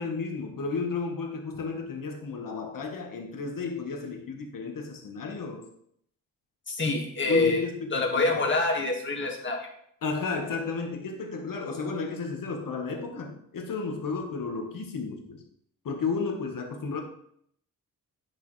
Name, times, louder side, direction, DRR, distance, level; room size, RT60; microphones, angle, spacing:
voice 1, 0.0-5.7 7.3-8.4 10.0-15.4 15.8-17.0, left 4 dB, 70° left, 3 dB, 1.6 m, -33 dB
voice 2, 6.7-7.6 7.9-9.7, left 3 dB, 35° left, 0 dB, 1.9 m, -26 dB
9.7 x 6.5 x 3.3 m, 0.68 s
cardioid pair, 105°, 34 cm